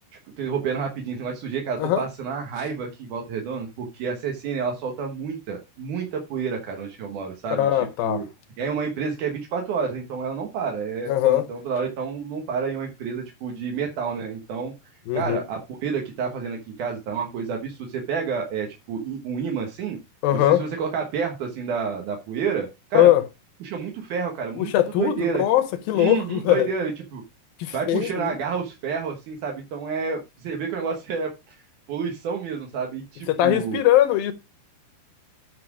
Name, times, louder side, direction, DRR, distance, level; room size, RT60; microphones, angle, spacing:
voice 1, 0.4-8.3 8.6-14.7 15.1-20.0 20.3-23.1 23.6-24.7 25.0-25.4 25.9-27.2 27.7-31.6 31.9-33.8, right 6 dB, 60° right, 2.3 m, -29 dB
voice 2, 7.5-8.2 11.1-11.5 15.1-15.4 20.2-20.6 22.9-23.2 24.6-26.7 27.6-28.3 33.3-34.3, left 13 dB, 75° left, 2.3 m, -20 dB
9.8 x 5.9 x 4.8 m
omnidirectional pair, 5.0 m